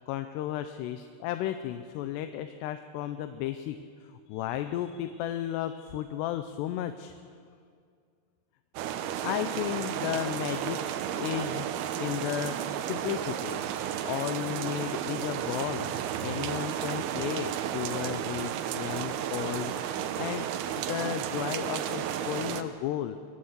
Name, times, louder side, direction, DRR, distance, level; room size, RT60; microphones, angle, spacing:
voice 1, 0.1-7.1 9.2-10.8 11.2-11.7 12.0-12.6 12.8-13.6 14.0-15.9 16.2-20.5 20.8-23.2, left 12 dB, 85° left, 9 dB, 2.8 m, -34 dB
sound 1, 8.8-22.6, right 10 dB, 75° right, 2.7 m, -33 dB
23.5 x 14.5 x 8.1 m, 2.2 s
omnidirectional pair, 4.8 m